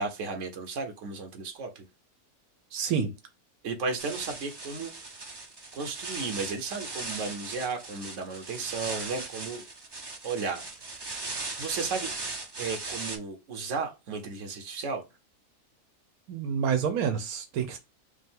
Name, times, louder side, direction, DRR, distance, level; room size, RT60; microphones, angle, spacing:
voice 1, 0.0-1.8 3.6-4.9 5.7-9.6 10.2-10.6 11.6-12.1 12.6-15.1, right 4 dB, 60° right, 1.3 m, -34 dB
voice 2, 2.7-3.1 16.3-17.8, right 7 dB, 85° right, 1.1 m, -28 dB
sound 1, 4.0-13.2, right 3 dB, 40° right, 0.3 m, -38 dB
5.2 x 2.1 x 3.6 m
omnidirectional pair, 1.5 m